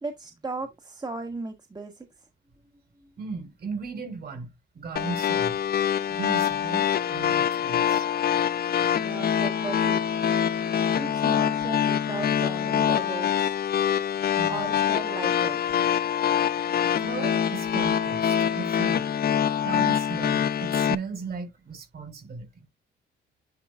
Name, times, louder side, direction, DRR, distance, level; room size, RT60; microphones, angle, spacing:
voice 1, 0.0-2.1 9.0-10.2 10.9-13.5 14.5-15.8, right 3 dB, 20° right, 1.5 m, -36 dB
voice 2, 3.2-5.6 6.1-8.1 14.4-14.8 17.0-19.1 19.6-22.7, right 5 dB, 50° right, 4.2 m, -36 dB
sound 1, 5.0-21.0, left 9 dB, 50° left, 0.7 m, -25 dB
10.5 x 3.8 x 2.5 m
cardioid pair, 90°, 20 cm